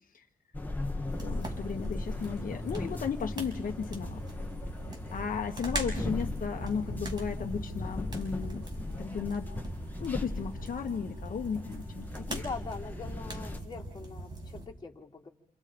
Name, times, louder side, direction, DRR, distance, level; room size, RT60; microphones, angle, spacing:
sound 1, 0.5-13.6, left 2 dB, 10° left, 2.2 m, -38 dB
sound 2, 1.1-14.7, right 1 dB, 30° right, 5.7 m, -42 dB
voice 1, 1.2-4.2 5.1-9.5 10.0-12.4, left 6 dB, 70° left, 4 dB, 1.4 m, -35 dB
voice 2, 12.3-15.3, left 4 dB, 30° left, -3 dB, 3.7 m, -42 dB
29.0 x 27.5 x 5.2 m, 0.65 s
wide cardioid pair, 110°, 15 cm